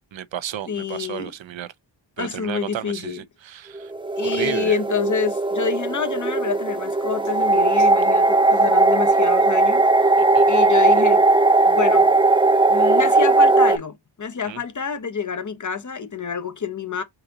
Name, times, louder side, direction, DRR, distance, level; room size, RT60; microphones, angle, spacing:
voice 1, 0.1-1.7 2.2-3.9 4.2-4.8 10.2-10.5 14.5-14.6, right 10 dB, 70° right, 0.6 m, -33 dB
voice 2, 0.7-1.3 2.2-3.2 4.2-9.9 10.5-11.2 11.7-12.2 12.7-17.0, left 6 dB, 40° left, 0.8 m, -27 dB
sound 1, 3.8-13.8, right 2 dB, 10° right, 0.3 m, -18 dB
4.0 x 2.6 x 3.9 m
wide cardioid pair, 75°, 47 cm